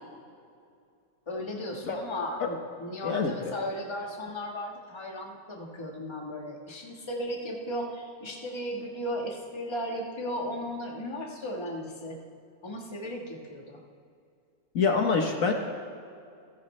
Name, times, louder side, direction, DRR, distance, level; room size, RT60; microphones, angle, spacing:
voice 1, 1.3-12.2 12.6-13.8, equal, 20° left, 0 dB, 1.4 m, -36 dB
voice 2, 3.0-3.5 14.7-15.5, left 5 dB, 60° left, 3 dB, 1.5 m, -26 dB
27.0 x 11.0 x 3.3 m, 2.4 s
omnidirectional pair, 1.6 m